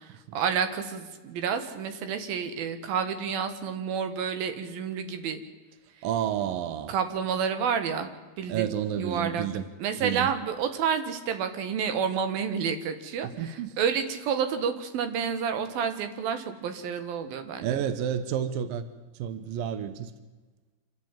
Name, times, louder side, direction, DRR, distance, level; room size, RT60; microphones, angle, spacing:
voice 1, 0.0-5.4 6.9-8.1 8.4-8.7 9.0-9.5 9.8-17.8, right 7 dB, 60° right, 9 dB, 2.9 m, -29 dB
voice 2, 6.0-6.9 8.5-9.6 10.0-10.3 13.2-13.7 17.6-18.9 19.2-20.1, right 9 dB, 80° right, 11 dB, 2.1 m, -30 dB
27.0 x 13.5 x 9.0 m, 1.3 s
omnidirectional pair, 5.4 m